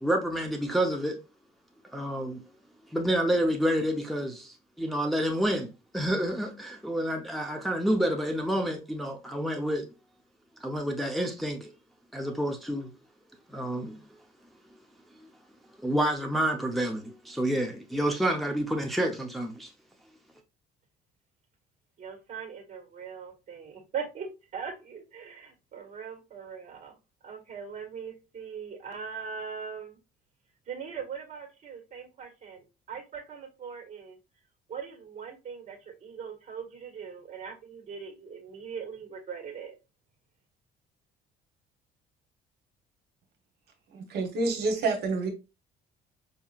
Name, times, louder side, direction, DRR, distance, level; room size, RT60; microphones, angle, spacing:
voice 1, 0.0-1.2 1.9-2.4 2.9-9.9 10.6-11.7 12.1-12.9 13.5-14.2 15.8-19.7, right 1 dB, ahead, 0.7 m, -29 dB
voice 2, 22.0-27.0 27.2-30.0 30.7-34.2 34.7-39.8, right 6 dB, 45° right, 1.5 m, -40 dB
voice 3, 43.9-45.3, right 3 dB, 75° right, 1.0 m, -28 dB
4.9 x 2.8 x 2.4 m
cardioid pair, 110°, 17 cm